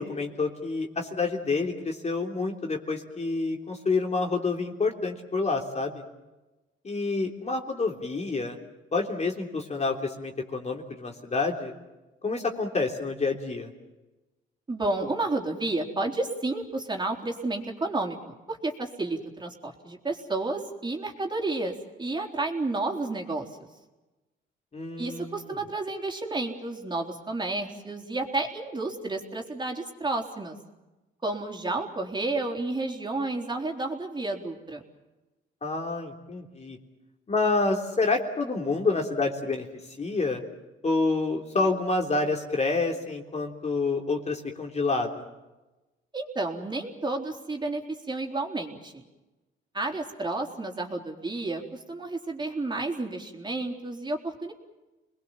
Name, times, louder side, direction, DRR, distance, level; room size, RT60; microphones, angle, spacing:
voice 1, 0.0-6.0 6.8-8.6 8.9-11.7 12.2-13.7 24.7-25.4 35.6-36.8 37.3-39.7 40.0-40.4 40.8-45.2, left 3 dB, 35° left, 2 dB, 3.4 m, -28 dB
voice 2, 14.7-18.2 18.5-23.5 25.0-30.6 31.2-34.8 46.1-47.8 48.1-49.0 49.7-54.5, right 2 dB, 20° right, 1 dB, 4.0 m, -31 dB
28.5 x 21.0 x 7.4 m, 1.1 s
cardioid pair, 90°, 20 cm